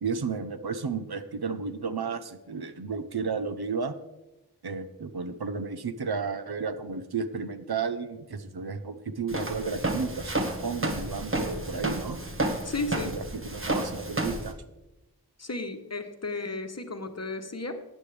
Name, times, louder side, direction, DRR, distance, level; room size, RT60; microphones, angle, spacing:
voice 1, 0.0-3.9 4.6-12.2 13.1-14.5, right 5 dB, 70° right, 11 dB, 0.8 m, -33 dB
Walk footsteps, 9.3-14.5, right 1 dB, 30° right, 1.3 m, -31 dB
voice 2, 12.6-13.2 15.4-17.8, left 2 dB, 40° left, 7 dB, 1.1 m, -34 dB
14.5 x 9.2 x 3.3 m, 0.99 s
wide cardioid pair, 65°, 40 cm